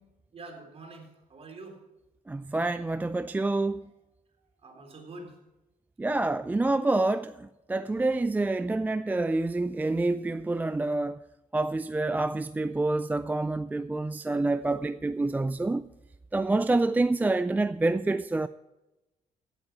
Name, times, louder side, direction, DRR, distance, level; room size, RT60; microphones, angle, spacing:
voice 1, 0.3-1.8 4.6-5.4, right 2 dB, 45° right, 4.0 m, -45 dB
voice 2, 2.3-3.9 6.0-11.2 11.5-15.9 16.3-18.5, right 2 dB, 10° right, 0.3 m, -27 dB
16.0 x 8.2 x 4.5 m
cardioid pair, 95°, 14 cm